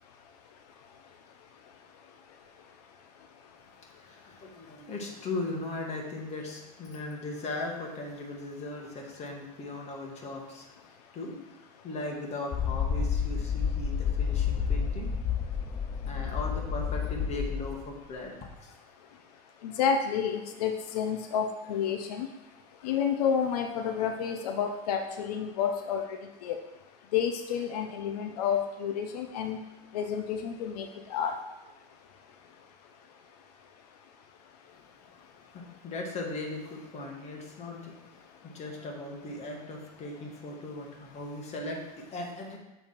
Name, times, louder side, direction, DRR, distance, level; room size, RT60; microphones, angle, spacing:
voice 1, 4.0-10.7 11.1-11.4 11.8-15.1 16.0-18.7 35.5-42.6, left 2 dB, 35° left, 0 dB, 1.7 m, -38 dB
sound 1, 12.5-17.9, left 7 dB, 20° left, 0.4 m, -30 dB
voice 2, 19.6-22.3 22.8-26.6 27.1-29.6 29.9-31.3, left 7 dB, 90° left, 5 dB, 0.6 m, -30 dB
7.0 x 3.5 x 5.7 m, 1.0 s
supercardioid pair, 120°, 19 cm